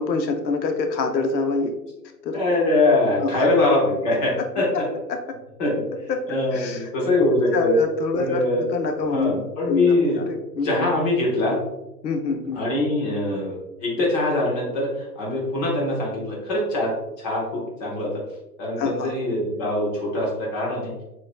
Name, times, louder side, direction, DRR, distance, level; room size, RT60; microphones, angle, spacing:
voice 1, 0.0-1.7 2.2-2.4 3.2-3.3 5.1-5.2 6.1-6.8 7.5-9.4 9.7-10.9 12.0-12.6 18.8-19.1, left 4 dB, 90° left, 5 dB, 0.8 m, -26 dB
voice 2, 2.3-4.7 5.6-5.8 6.3-7.8 8.2-8.6 9.1-10.2 10.6-11.6 12.5-18.2 18.6-20.9, left 2 dB, 25° left, -4 dB, 1.1 m, -23 dB
6.6 x 2.9 x 2.2 m, 0.96 s
hypercardioid pair, 160°, 50 cm